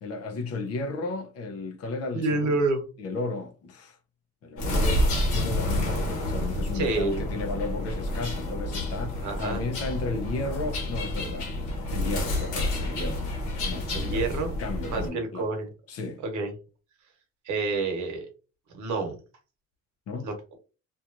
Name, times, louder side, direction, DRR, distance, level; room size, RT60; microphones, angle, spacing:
voice 1, 0.0-2.5 3.0-4.0 4.4-13.3 13.6-14.3 14.6-15.5 15.9-16.2 20.1-20.3, left 3 dB, 50° left, 0.6 m, -34 dB
voice 2, 2.1-2.8 6.7-7.2 9.2-9.6 13.9-14.5 14.9-15.7 16.2-16.5 17.4-18.3 18.7-19.2 20.2-20.6, right 3 dB, 70° right, 1.0 m, -28 dB
sound 1, 4.6-15.1, left 1 dB, 75° left, 1.1 m, -29 dB
2.9 x 2.3 x 2.5 m
cardioid pair, 180°, 31 cm